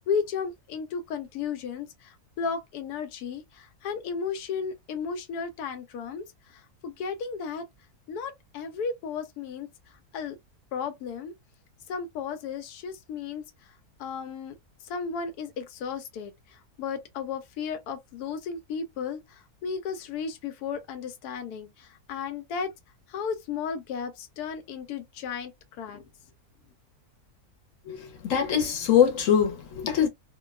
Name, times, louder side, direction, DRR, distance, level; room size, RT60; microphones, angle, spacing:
voice 1, 0.1-6.2 6.8-7.6 8.1-9.7 10.1-10.4 10.7-11.3 11.9-13.4 14.0-14.6 14.9-16.3 16.8-19.2 19.6-22.7 23.1-25.5 25.8-26.0, left 6 dB, 90° left, 1.1 m, -34 dB
voice 2, 27.9-30.1, left 8 dB, 65° left, 1.0 m, -23 dB
2.6 x 2.2 x 2.2 m
omnidirectional pair, 1.6 m